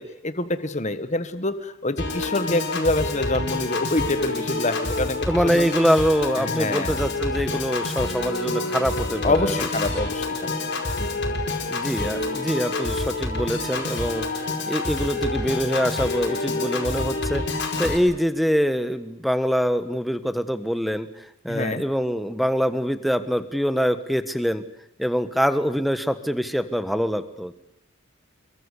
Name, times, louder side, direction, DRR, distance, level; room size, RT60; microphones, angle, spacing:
voice 1, 0.0-5.7 6.5-7.0 9.2-10.6 11.0-11.4 21.5-21.8, left 2 dB, 35° left, 11 dB, 1.5 m, -26 dB
Piano / Organ, 2.0-18.0, left 2 dB, 55° left, 5.0 m, -27 dB
voice 2, 5.3-9.5 11.7-14.3 14.7-24.6 25.0-27.5, equal, ahead, 11 dB, 1.3 m, -24 dB
26.5 x 23.0 x 8.3 m, 0.77 s
head